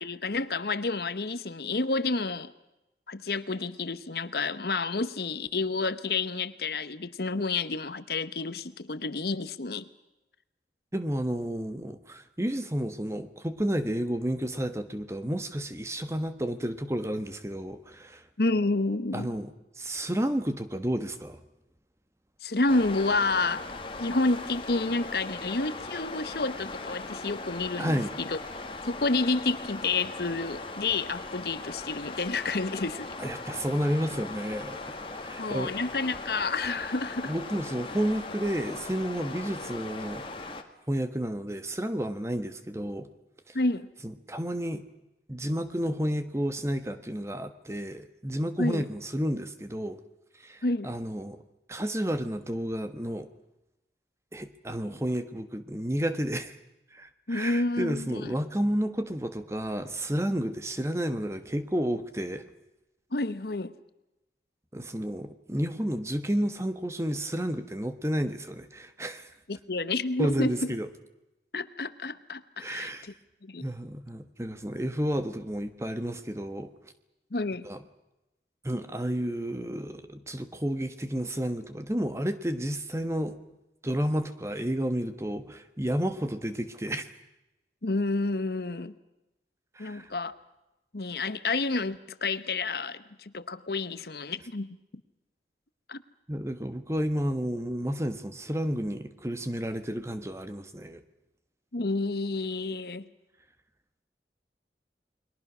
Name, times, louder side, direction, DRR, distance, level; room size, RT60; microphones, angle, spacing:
voice 1, 0.0-2.5 3.1-9.9 18.4-19.3 22.4-23.7 24.0-28.4 28.8-33.2 35.4-37.3 43.5-43.9 48.6-48.8 50.6-50.9 57.3-58.3 63.1-63.7 69.5-70.5 71.5-73.1 73.4-73.6 77.3-77.7 87.8-88.9 89.8-90.3 90.9-94.8 95.9-96.0 101.7-103.1, left 3 dB, 65° left, 14 dB, 1.0 m, -29 dB
voice 2, 10.9-18.2 19.1-21.4 27.8-28.1 33.2-35.7 37.2-40.3 40.9-43.1 43.5-43.6 44.0-44.8 45.3-50.0 50.4-51.4 51.7-53.3 54.3-56.6 56.9-62.5 64.7-69.3 70.2-70.9 72.6-73.1 73.6-76.7 77.6-77.8 78.6-83.4 83.8-87.1 89.7-90.1 96.3-101.0, equal, 15° right, 10 dB, 1.3 m, -31 dB
sound 1, 22.7-40.6, left 3 dB, 30° left, 1.8 m, -39 dB
30.0 x 22.0 x 6.2 m, 0.96 s
head